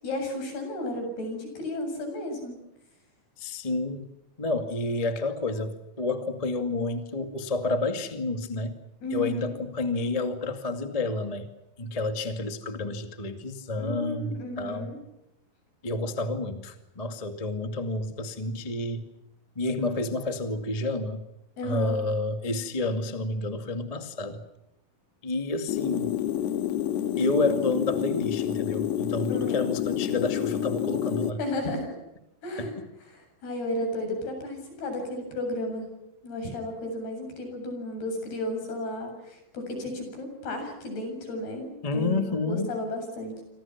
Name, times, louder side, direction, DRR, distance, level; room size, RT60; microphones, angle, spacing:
voice 1, 0.0-2.6 9.0-9.4 13.8-15.0 21.6-22.0 29.3-29.6 31.4-31.9 32.4-32.7 33.1-35.9 36.2-43.4, left 1 dB, 70° left, 5 dB, 9.5 m, -33 dB
voice 2, 3.4-4.1 4.4-8.8 9.1-11.5 11.8-14.9 15.8-19.1 19.5-21.2 21.6-24.4 25.2-26.1 27.2-31.4 31.6-31.8 32.6-32.7 41.8-42.7, left 2 dB, 20° left, 7 dB, 1.0 m, -29 dB
sound 1, 25.7-31.3, left 11 dB, 90° left, 3.5 m, -28 dB
28.0 x 26.5 x 6.0 m, 0.89 s
omnidirectional pair, 4.7 m